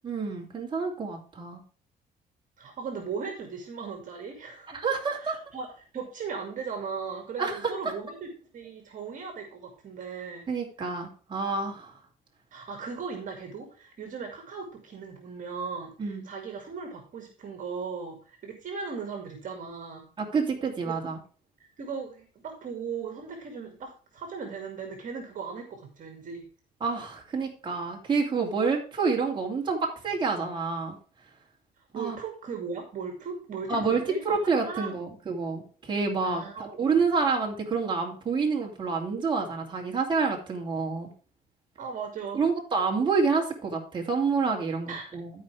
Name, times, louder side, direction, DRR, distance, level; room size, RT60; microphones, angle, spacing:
voice 1, 0.0-1.6 4.8-5.4 7.4-7.7 10.5-11.9 16.0-16.3 20.2-21.2 26.8-31.0 32.0-32.2 33.7-41.1 42.3-45.3, right 4 dB, 30° right, -1 dB, 2.7 m, -28 dB
voice 2, 2.6-4.8 5.2-5.7 5.9-8.3 8.5-10.5 12.5-20.1 20.8-21.1 21.8-26.4 31.9-35.0 36.2-37.0 41.8-42.5 44.9-45.0, right 5 dB, 50° right, 4 dB, 2.3 m, -38 dB
13.5 x 5.1 x 3.3 m, 0.38 s
cardioid pair, 110°, 17 cm